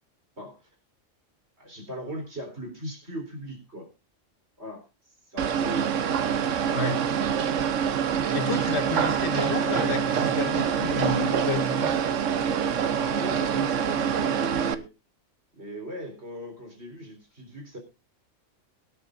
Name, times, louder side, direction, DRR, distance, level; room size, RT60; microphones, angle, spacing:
voice 1, 0.4-0.7 1.6-3.9 4.6-4.8 5.3-6.0 13.0-14.9 15.6-17.8, right 1 dB, 55° right, 4 dB, 4.2 m, -38 dB
sound 1, 5.4-14.7, right 8 dB, 75° right, 1.2 m, -25 dB
voice 2, 8.3-12.0, left 3 dB, 55° left, 6 dB, 1.9 m, -30 dB
23.0 x 10.0 x 2.6 m, 0.27 s
omnidirectional pair, 1.3 m